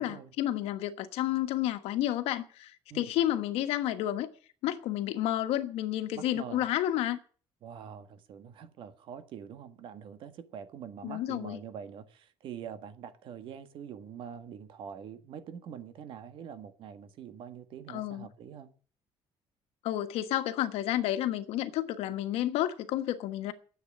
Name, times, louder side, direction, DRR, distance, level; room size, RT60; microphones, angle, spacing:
voice 1, 0.0-4.3 4.6-7.2 11.0-11.6 17.9-18.3 19.8-23.5, left 13 dB, 85° left, 1.3 m, -31 dB
voice 2, 6.1-6.6 7.6-18.7, right 8 dB, 60° right, 1.6 m, -44 dB
10.5 x 8.0 x 9.8 m
cardioid pair, 155°, 10 cm